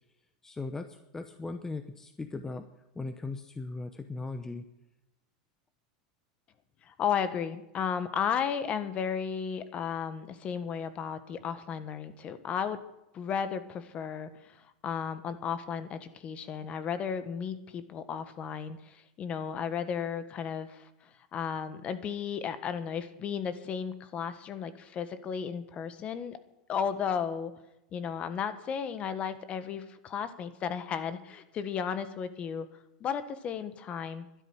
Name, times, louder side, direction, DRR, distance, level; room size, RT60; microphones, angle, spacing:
voice 1, 0.4-2.7 2.9-4.7, left 3 dB, 10° left, 9 dB, 0.8 m, -38 dB
voice 2, 6.8-12.8 13.1-26.4 26.7-27.5 27.9-32.7 33.0-34.2, left 7 dB, 35° left, 11 dB, 1.5 m, -34 dB
12.5 x 10.5 x 9.0 m, 0.89 s
supercardioid pair, 130°, 4 cm